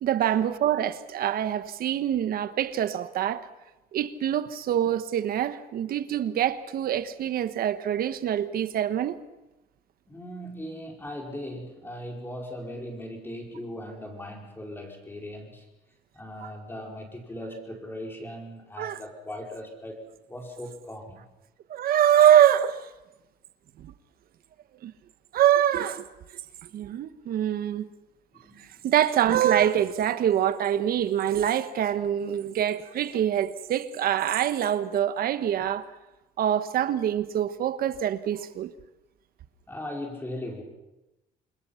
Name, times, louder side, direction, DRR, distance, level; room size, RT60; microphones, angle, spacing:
voice 1, 0.0-3.5 3.9-9.2 16.4-16.5 18.8-19.0 21.7-22.8 23.8-23.9 24.8-24.9 25.3-26.1 26.7-27.9 28.8-35.9 36.4-38.7, right 10 dB, 60° right, 1.3 m, -24 dB
voice 2, 10.1-15.7 16.1-20.0 20.3-21.2 28.3-28.9 39.7-40.6, left 1 dB, 10° left, 5.1 m, -39 dB
27.0 x 21.0 x 5.9 m
cardioid pair, 110°, 17 cm